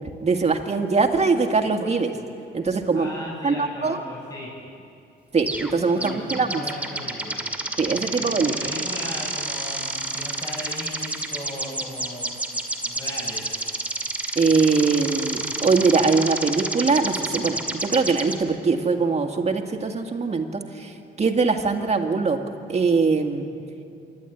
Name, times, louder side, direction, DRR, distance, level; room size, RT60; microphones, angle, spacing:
voice 1, 0.2-2.1 2.5-3.1 3.4-4.0 5.3-6.6 7.8-8.5 14.4-22.4 22.7-23.5, right 4 dB, 35° right, 5 dB, 2.0 m, -22 dB
voice 2, 2.9-4.5 5.9-7.4 7.7-12.4 12.8-13.5, left 1 dB, 20° left, -5 dB, 5.5 m, -37 dB
sound 1, 5.5-5.7 6.0-18.4, right 2 dB, 5° right, 2.4 m, -30 dB
26.0 x 11.5 x 9.4 m, 2.6 s
cardioid pair, 90°, 20 cm